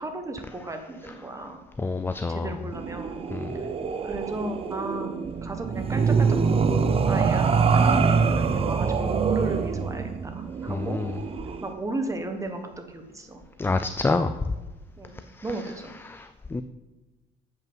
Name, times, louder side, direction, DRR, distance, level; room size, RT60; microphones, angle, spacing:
voice 1, 0.0-1.6 2.3-3.2 3.5-3.7 4.0-11.0 11.6-13.4 15.0-15.9, right 2 dB, 20° right, 5 dB, 1.3 m, -35 dB
voice 2, 1.8-2.5 3.3-3.6 10.7-11.1 13.6-14.4 16.1-16.6, left 3 dB, 15° left, 10 dB, 0.4 m, -27 dB
sound 1, 2.7-11.7, right 5 dB, 35° right, 0.7 m, -24 dB
7.7 x 5.5 x 7.2 m, 1.1 s
cardioid pair, 110°, 17 cm